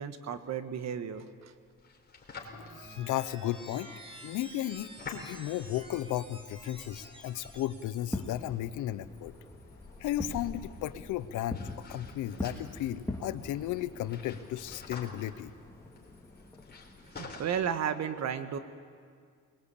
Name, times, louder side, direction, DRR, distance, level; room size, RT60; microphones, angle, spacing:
voice 1, 0.0-1.5 17.2-18.6, right 8 dB, 60° right, 9 dB, 1.5 m, -33 dB
sound 1, 1.3-17.7, left 4 dB, 35° left, 4.1 m, -50 dB
sound 2, 2.4-8.3, equal, 20° right, 4.9 m, -50 dB
voice 2, 2.5-3.9 4.2-9.3 10.0-15.5, left 13 dB, 90° left, 15 dB, 0.8 m, -35 dB
Fireworks, 7.9-17.2, left 2 dB, 10° left, 2.3 m, -43 dB
22.0 x 21.0 x 8.5 m, 2.1 s
cardioid pair, 90°, 30 cm